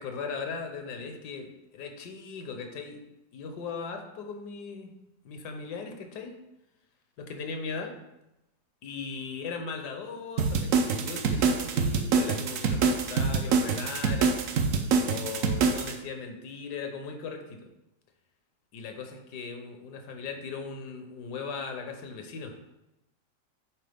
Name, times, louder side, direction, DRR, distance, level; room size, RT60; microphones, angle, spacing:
voice 1, 0.0-3.0 3.3-4.9 5.2-6.4 7.2-8.0 8.8-14.4 15.0-17.6 18.7-22.6, left 5 dB, 70° left, 5 dB, 1.3 m, -38 dB
sound 1, 10.4-15.9, right 5 dB, 65° right, 0.9 m, -25 dB
7.6 x 4.5 x 3.4 m, 0.92 s
omnidirectional pair, 1.9 m